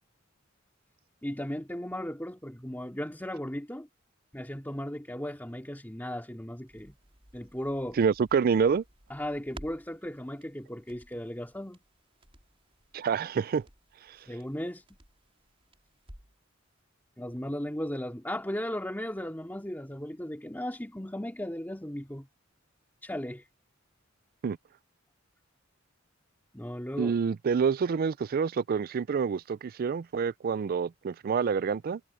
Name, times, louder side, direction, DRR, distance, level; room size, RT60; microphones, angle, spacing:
voice 1, 1.2-3.9 4.3-6.9 7.3-8.0 9.1-11.8 14.3-14.8 17.2-22.3 23.0-23.5 26.5-27.1, left 1 dB, 10° left, 2.4 m, -36 dB
Crackle, 6.7-16.5 16.8-16.9, right 1 dB, 30° right, 4.2 m, -55 dB
voice 2, 8.0-8.8 12.9-13.6 14.1-14.2 24.4-24.6 27.0-32.0, right 6 dB, 45° right, 0.3 m, -27 dB
head